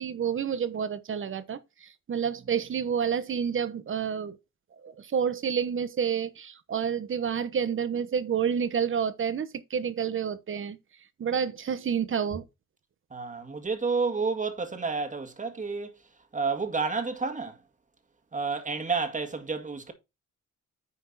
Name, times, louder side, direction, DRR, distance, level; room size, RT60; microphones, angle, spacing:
voice 1, 0.0-4.4 4.8-10.8 11.2-12.5, right 7 dB, 40° right, 1.1 m, -29 dB
voice 2, 13.1-15.9 16.3-17.6 18.3-19.9, right 4 dB, 25° right, 2.0 m, -30 dB
10.0 x 4.5 x 4.2 m
cardioid pair, 90°, 30 cm